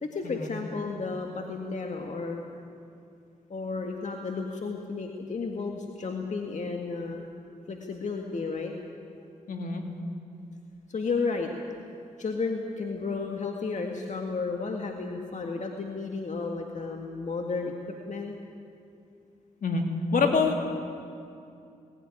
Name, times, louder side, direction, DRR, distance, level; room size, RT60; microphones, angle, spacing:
voice 1, 0.0-2.4 3.5-7.2 7.7-8.7 10.9-11.5 12.2-17.7 18.1-18.3, left 4 dB, 55° left, 2 dB, 2.0 m, -32 dB
voice 2, 9.5-9.8 19.6-19.8 20.1-20.6, left 4 dB, 70° left, 3 dB, 2.7 m, -25 dB
19.0 x 16.5 x 9.9 m, 2.5 s
supercardioid pair, 50°, 15 cm